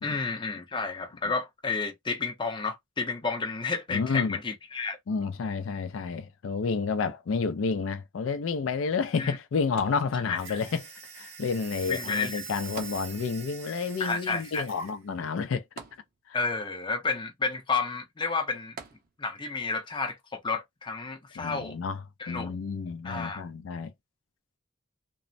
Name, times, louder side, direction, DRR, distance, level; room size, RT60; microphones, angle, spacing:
voice 1, 0.0-5.0 9.2-9.4 10.3-10.6 11.9-12.4 14.0-14.7 16.3-18.8 19.2-21.8 22.2-22.6 23.0-23.4, left 4 dB, 25° left, 0.6 m, -31 dB
voice 2, 3.9-4.4 5.1-15.6 16.3-16.4 21.4-23.9, left 5 dB, 80° left, 0.4 m, -30 dB
sound 1, 9.8-10.7 12.8-13.6 13.9-14.0 15.8-16.6 18.8-19.5 20.2-20.3, right 4 dB, 45° right, 0.7 m, -45 dB
sound 2, 10.3-15.0, right 6 dB, 75° right, 1.0 m, -43 dB
2.9 x 2.0 x 2.6 m
head